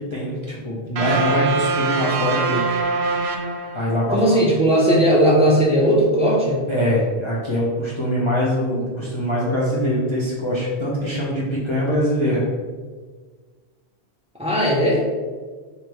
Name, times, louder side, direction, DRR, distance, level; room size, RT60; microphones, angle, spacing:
voice 1, 0.1-2.6 3.7-4.4 6.7-12.5, equal, 35° left, -6 dB, 0.6 m, -23 dB
sound 1, 1.0-4.2, right 4 dB, 75° right, 0.8 m, -23 dB
voice 2, 4.1-6.6 14.4-15.0, equal, 5° right, -5 dB, 0.6 m, -17 dB
3.3 x 2.6 x 4.5 m, 1.5 s
omnidirectional pair, 1.1 m